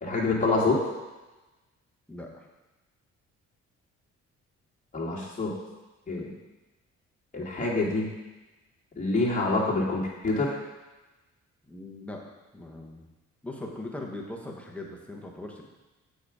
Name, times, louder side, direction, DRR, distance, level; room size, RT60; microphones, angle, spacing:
voice 1, 0.0-0.8 4.9-5.5 6.1-6.3 7.3-8.1 9.0-10.6, left 3 dB, 25° left, -6 dB, 2.6 m, -26 dB
voice 2, 2.1-2.5 11.7-12.2 12.5-13.1 13.4-15.6, left 1 dB, 5° left, -1 dB, 1.5 m, -40 dB
8.0 x 5.3 x 5.0 m, 1.1 s
cardioid pair, 90°, 30 cm